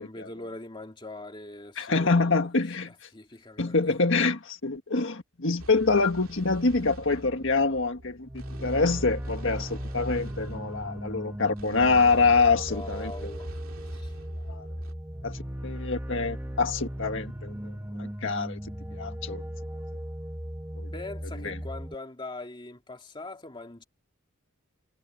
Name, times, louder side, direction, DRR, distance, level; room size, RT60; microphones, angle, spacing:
voice 1, 0.0-2.4 2.8-3.9 12.7-13.6 13.9-14.1 20.9-23.8, left 2 dB, 25° left, 2.3 m, -42 dB
voice 2, 1.8-2.9 3.6-8.3 8.6-13.3 14.5-14.7 15.2-17.5 18.0-18.6 18.9-19.4 20.8-20.9 21.4-21.5, left 4 dB, 60° left, 1.7 m, -25 dB
sound 1, 5.6-14.9, right 1 dB, 80° right, 2.5 m, -45 dB
sound 2, 8.3-21.9, equal, 10° right, 1.5 m, -37 dB
head